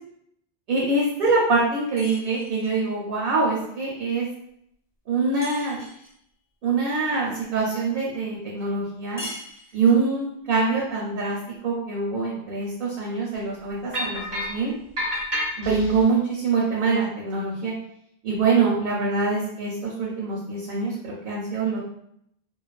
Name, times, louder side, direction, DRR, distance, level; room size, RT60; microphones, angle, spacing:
voice 1, 0.7-4.3 5.1-5.8 6.6-9.3 9.7-11.4 11.6-14.7 15.6-17.7 18.2-21.8, right 4 dB, 65° right, -4 dB, 0.8 m, -24 dB
sound 1, 2.0-2.8 5.4-6.2 9.2-10.1, left 1 dB, 15° left, 0.8 m, -40 dB
sound 2, 13.9-14.6 15.0-16.0, left 1 dB, 30° right, 0.5 m, -28 dB
2.4 x 2.3 x 2.3 m, 0.73 s
omnidirectional pair, 1.1 m